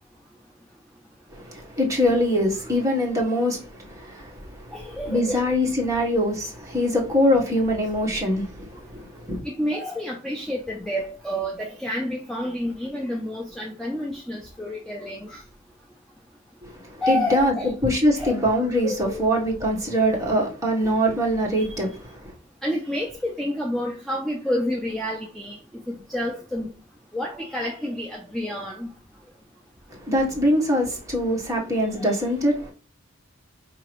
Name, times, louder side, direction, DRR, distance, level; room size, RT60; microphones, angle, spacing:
voice 1, 1.3-4.8 5.1-9.4 16.6-17.5 17.8-22.3 30.0-32.7, equal, 15° right, 1.0 m, -23 dB
voice 2, 4.7-5.5 9.4-15.4 17.0-17.7 18.2-18.4 18.8-19.3 22.6-25.6 25.9-26.7 27.1-28.9, left 1 dB, ahead, 0.5 m, -29 dB
4.9 x 2.8 x 3.0 m
head